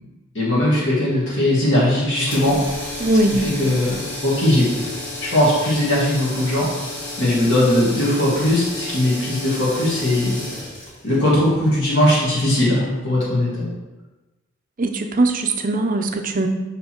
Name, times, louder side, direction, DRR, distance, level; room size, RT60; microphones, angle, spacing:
voice 1, 0.3-4.7 5.2-6.7 7.2-10.4 11.0-13.7, left 1 dB, 65° left, -8 dB, 2.1 m, -19 dB
sound 1, 2.2-12.3, left 2 dB, 35° left, 2.2 m, -32 dB
voice 2, 3.0-3.4 14.8-16.5, right 2 dB, 40° right, 5 dB, 0.6 m, -20 dB
5.8 x 5.5 x 4.4 m, 1.1 s
head